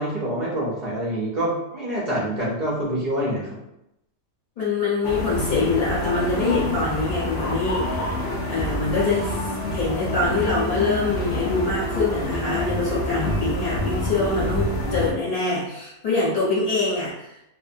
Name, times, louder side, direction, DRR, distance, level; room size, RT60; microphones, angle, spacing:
voice 1, 0.0-3.6, right 1 dB, 50° right, -6 dB, 0.5 m, -26 dB
voice 2, 4.6-8.2 8.5-9.3 9.7-17.3, left 3 dB, 30° left, -8 dB, 0.9 m, -24 dB
sound 1, 5.0-15.1, left 1 dB, 75° left, 0.5 m, -27 dB
2.6 x 2.1 x 2.6 m, 0.85 s
omnidirectional pair, 1.6 m